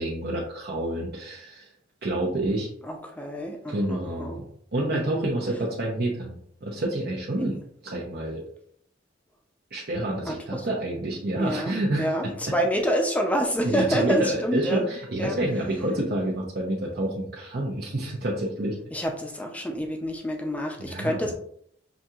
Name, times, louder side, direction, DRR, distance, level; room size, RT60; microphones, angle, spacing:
voice 1, 0.0-1.7 2.0-2.7 3.7-4.4 4.7-8.4 9.7-12.3 13.6-18.8 20.8-21.3, right 1 dB, 60° right, -3 dB, 0.7 m, -28 dB
voice 2, 2.8-4.3 4.9-5.3 10.2-10.7 11.4-14.8 15.2-15.4 18.9-21.3, equal, 10° left, 3 dB, 0.5 m, -28 dB
6.0 x 2.8 x 2.4 m, 0.65 s
head